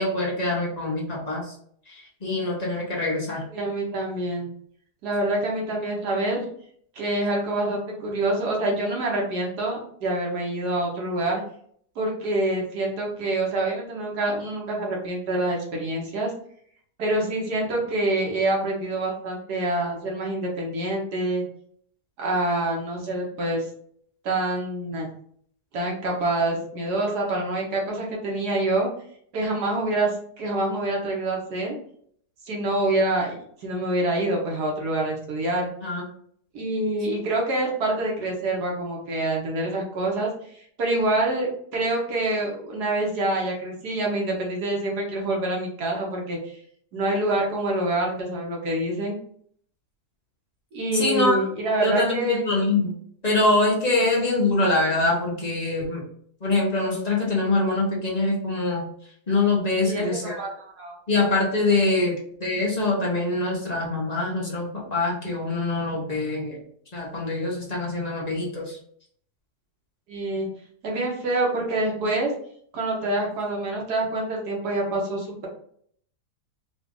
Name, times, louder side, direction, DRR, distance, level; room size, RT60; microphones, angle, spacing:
voice 1, 0.0-1.5 2.2-3.4 35.8-36.0 50.9-51.4 51.8-52.9 53.2-56.0 56.4-58.9 59.3-60.4 61.1-66.6 66.9-68.8, left 2 dB, 30° left, -3 dB, 1.0 m, -24 dB
voice 2, 3.5-4.5 5.0-6.4 6.9-11.4 11.9-16.3 17.0-21.4 22.2-23.7 24.2-25.1 25.7-28.9 29.3-31.8 32.4-35.7 36.5-46.6 46.9-49.2 50.7-52.4 59.8-61.0 70.1-70.5 70.8-72.3 72.7-75.5, right 2 dB, 80° right, -1 dB, 1.7 m, -26 dB
4.0 x 2.5 x 3.7 m, 0.62 s
omnidirectional pair, 1.7 m